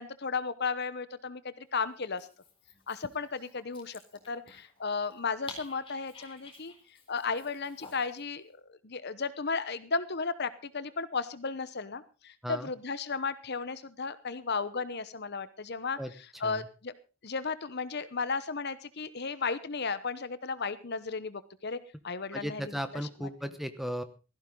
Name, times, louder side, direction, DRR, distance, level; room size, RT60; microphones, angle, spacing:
voice 1, 0.0-2.3 2.9-4.0 4.3-6.7 7.1-8.4 8.7-16.9 17.2-21.8 22.0-22.7 23.2-23.3, left 4 dB, 45° left, 14 dB, 0.9 m, -34 dB
Dog, 2.0-8.2, left 3 dB, 25° left, 3.8 m, -52 dB
voice 2, 22.3-24.0, equal, ahead, 9 dB, 1.0 m, -36 dB
17.0 x 14.5 x 3.8 m, 0.32 s
head